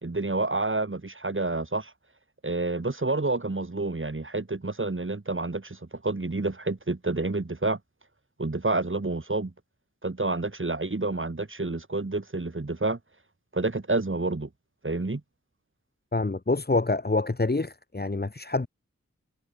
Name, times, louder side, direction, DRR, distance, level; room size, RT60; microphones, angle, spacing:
voice 1, 0.0-1.9 2.4-7.8 8.4-9.5 10.0-13.0 13.5-14.5 14.8-15.2, right 2 dB, 45° right, 4.6 m, -29 dB
voice 2, 16.1-18.7, left 3 dB, 35° left, 1.6 m, -26 dB
wide cardioid pair, 75°, 29 cm